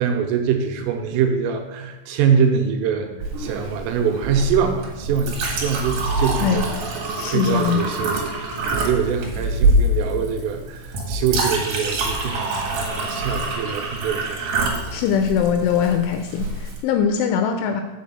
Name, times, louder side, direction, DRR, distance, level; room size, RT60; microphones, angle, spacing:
voice 1, 0.0-6.8 7.2-14.6, right 7 dB, 85° right, 5 dB, 3.3 m, -24 dB
Chink clink, 3.2-16.8, right 2 dB, 60° right, 2.6 m, -25 dB
voice 2, 7.2-7.9 14.9-17.8, left 8 dB, 85° left, 6 dB, 2.8 m, -21 dB
6.1 x 6.1 x 7.2 m, 1.1 s
omnidirectional pair, 5.9 m